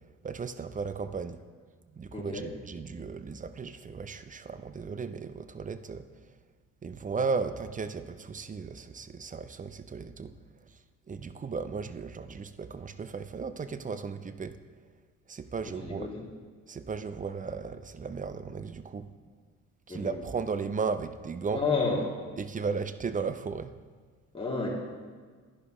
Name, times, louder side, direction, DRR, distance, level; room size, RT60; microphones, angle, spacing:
voice 1, 0.2-1.4 1.9-6.0 6.8-10.3 11.1-14.6 15.3-16.1 16.7-19.1 19.9-21.6 22.4-23.7, right 5 dB, 20° right, 12 dB, 0.5 m, -35 dB
voice 2, 2.1-2.5 15.7-16.2 19.9-20.2 21.5-22.1 24.3-24.7, left 4 dB, 15° left, -3 dB, 2.5 m, -31 dB
11.0 x 10.5 x 3.1 m, 1.6 s
figure-of-eight pair, 45°, 42 cm